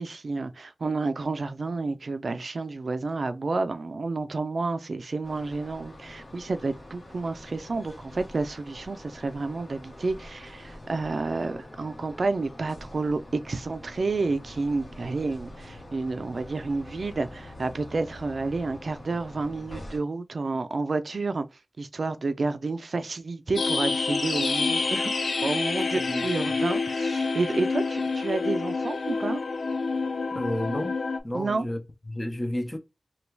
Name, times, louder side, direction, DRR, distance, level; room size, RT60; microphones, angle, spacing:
voice 1, 0.0-21.5 21.8-25.1 25.4-29.4 31.3-31.7, right 3 dB, 70° right, 0.4 m, -30 dB
sound 1, 5.2-20.0, left 1 dB, 50° left, 1.2 m, -45 dB
sound 2, 23.5-31.2, left 4 dB, 90° left, 0.3 m, -27 dB
voice 2, 30.3-30.9 31.2-31.8 32.1-32.8, left 1 dB, 20° left, 0.6 m, -31 dB
3.0 x 2.2 x 3.2 m
wide cardioid pair, 85°, 0 cm